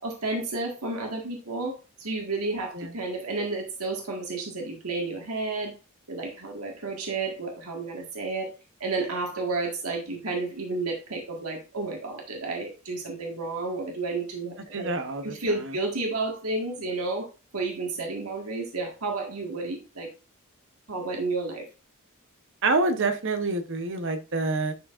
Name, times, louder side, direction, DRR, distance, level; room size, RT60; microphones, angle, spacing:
voice 1, 0.0-5.7 6.1-8.5 8.8-14.9 15.2-17.3 17.5-20.1 20.9-21.7, right 3 dB, 85° right, 1 dB, 1.8 m, -31 dB
voice 2, 14.7-15.8 22.6-24.7, right 3 dB, 60° right, 8 dB, 0.9 m, -27 dB
10.5 x 4.8 x 2.5 m, 0.31 s
head